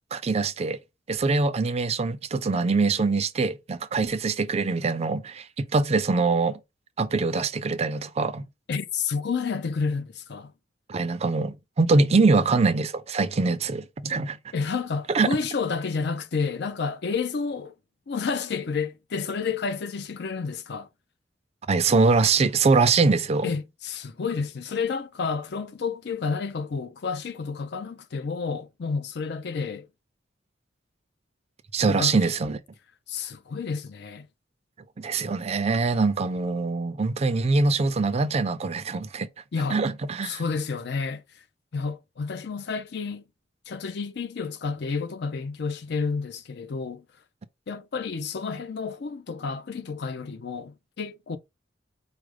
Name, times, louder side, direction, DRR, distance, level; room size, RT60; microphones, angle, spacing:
voice 1, 0.1-0.8 1.1-6.6 7.0-8.5 10.9-14.4 15.1-15.3 21.7-23.5 31.7-32.6 35.0-39.3 39.7-40.4, right 3 dB, 35° right, 0.4 m, -23 dB
voice 2, 8.7-10.5 12.1-12.4 14.5-17.7 18.1-20.9 23.4-29.9 31.9-32.2 33.1-34.3 39.5-39.8 40.2-41.2 41.7-43.2 43.7-47.0 47.7-51.4, left 5 dB, 60° left, 0.5 m, -30 dB
4.9 x 2.1 x 4.7 m
head